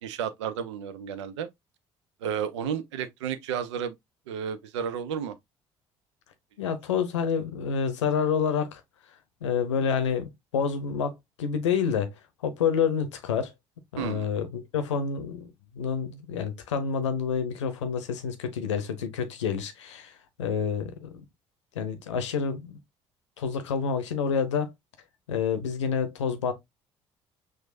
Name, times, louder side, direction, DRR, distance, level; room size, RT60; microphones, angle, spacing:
voice 1, 0.0-1.5 2.2-4.0 4.3-5.4 14.0-14.3, right 8 dB, 75° right, 0.5 m, -32 dB
voice 2, 6.6-8.8 9.4-12.1 12.4-13.5 13.9-20.1 20.4-21.2 21.7-22.8 23.4-24.7 25.3-26.5, left 6 dB, 80° left, 0.7 m, -28 dB
6.1 x 2.5 x 2.5 m
figure-of-eight pair, 50°, 15 cm